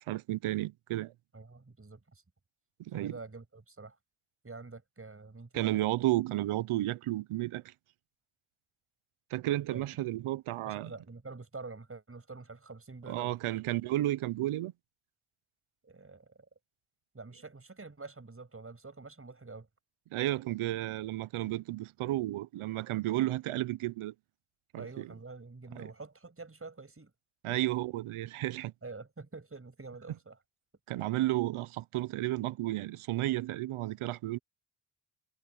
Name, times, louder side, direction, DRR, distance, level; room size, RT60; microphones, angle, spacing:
voice 1, 0.1-1.1 2.9-3.1 5.5-7.7 9.3-10.9 13.1-14.7 20.1-24.1 24.7-25.1 25.8-25.9 27.4-28.7 30.9-34.4, right 15 dB, 75° right, 1.0 m, -32 dB
voice 2, 1.3-2.2 2.9-4.0 4.4-5.8 9.7-9.8 10.6-13.3 15.8-16.3 17.1-19.7 24.8-27.1 27.5-27.6 28.8-30.4, right 3 dB, 25° right, 7.5 m, -47 dB
supercardioid pair, 60°, 49 cm